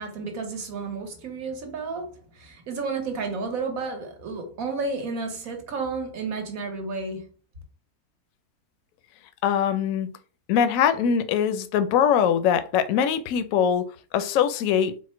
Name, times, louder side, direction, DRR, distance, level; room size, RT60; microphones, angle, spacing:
voice 1, 0.0-7.3, right 4 dB, 60° right, 1.4 m, -32 dB
voice 2, 9.4-10.1 10.5-13.8 14.1-14.9, left 8 dB, 70° left, 0.9 m, -22 dB
4.3 x 2.1 x 4.3 m
omnidirectional pair, 1.7 m